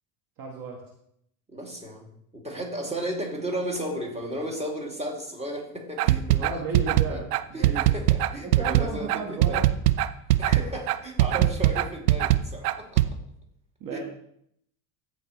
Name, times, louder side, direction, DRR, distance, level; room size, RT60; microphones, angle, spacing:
voice 1, 0.4-0.8 2.8-3.0 6.3-7.9 8.4-9.7 11.3-11.5 13.8-14.0, right 4 dB, 45° right, 1 dB, 1.5 m, -34 dB
voice 2, 1.5-2.1 2.3-7.2 7.5-9.6 10.4-13.0 13.9-14.0, right 1 dB, 15° right, 0 dB, 2.5 m, -34 dB
sound 1, 6.0-13.1, right 14 dB, 80° right, 0.6 m, -21 dB
15.0 x 5.1 x 3.1 m, 0.72 s
hypercardioid pair, 75°, 45 cm